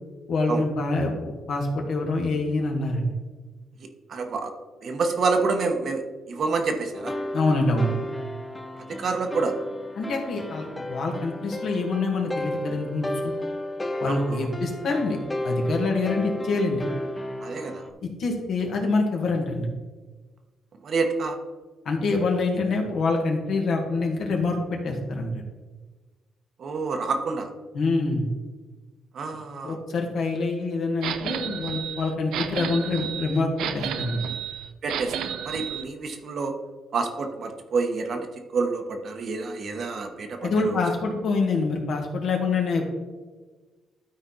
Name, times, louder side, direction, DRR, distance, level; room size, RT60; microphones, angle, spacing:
voice 1, 0.3-3.1 7.3-7.9 10.0-13.3 14.0-15.2 15.4-16.9 18.0-19.7 21.9-25.4 27.7-28.3 29.6-34.3 40.4-42.8, left 3 dB, 65° left, 1 dB, 1.8 m, -26 dB
voice 2, 4.1-4.5 4.8-7.1 8.9-9.6 14.1-14.5 17.4-17.8 20.8-21.4 26.6-27.5 29.1-29.8 34.8-36.5 36.9-38.3 38.5-40.7, right 4 dB, 55° right, 5 dB, 1.1 m, -28 dB
sound 1, 6.9-17.9, left 1 dB, 15° left, 0.7 m, -33 dB
sound 2, 31.0-35.8, right 9 dB, 85° right, 0.6 m, -32 dB
12.5 x 4.3 x 4.0 m, 1.3 s
cardioid pair, 90°, 0 cm